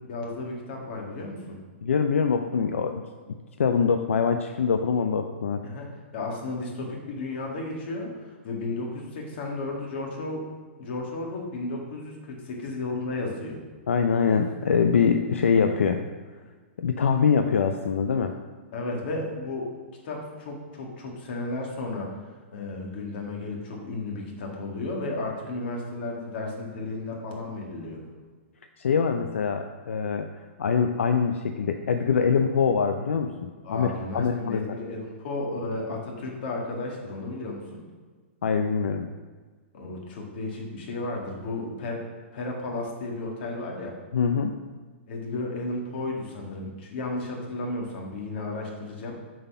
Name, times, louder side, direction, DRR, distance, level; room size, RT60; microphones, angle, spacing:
voice 1, 0.1-1.6 5.6-5.9 6.1-10.4 10.8-13.6 18.7-19.7 20.0-22.1 22.5-28.0 33.6-37.8 39.7-42.0 42.3-43.9 45.1-49.2, left 2 dB, 55° left, -1 dB, 2.0 m, -33 dB
voice 2, 1.8-3.0 3.6-5.6 13.9-16.0 16.8-18.3 28.8-30.3 30.6-34.6 38.4-39.1 44.1-44.5, left 6 dB, 85° left, 6 dB, 0.5 m, -24 dB
7.6 x 4.2 x 5.5 m, 1.4 s
hypercardioid pair, 140°, 7 cm